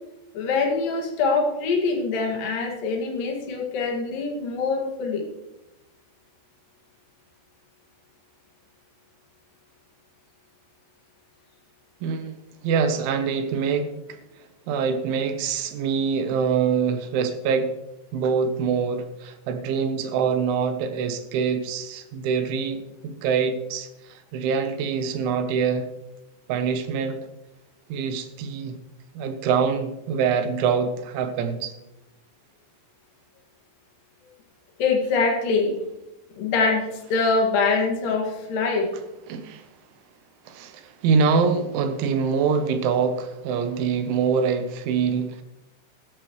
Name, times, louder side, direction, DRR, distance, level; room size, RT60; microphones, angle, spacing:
voice 1, 0.3-5.3 34.8-35.8 36.4-38.9, left 4 dB, 55° left, 1 dB, 3.1 m, -24 dB
voice 2, 12.0-14.0 14.7-17.7 18.1-25.9 26.5-27.2 27.9-28.8 29.2-31.7 39.3-39.6 40.5-45.4, right 6 dB, 75° right, 9 dB, 3.2 m, -24 dB
13.5 x 13.5 x 3.1 m, 0.93 s
omnidirectional pair, 5.8 m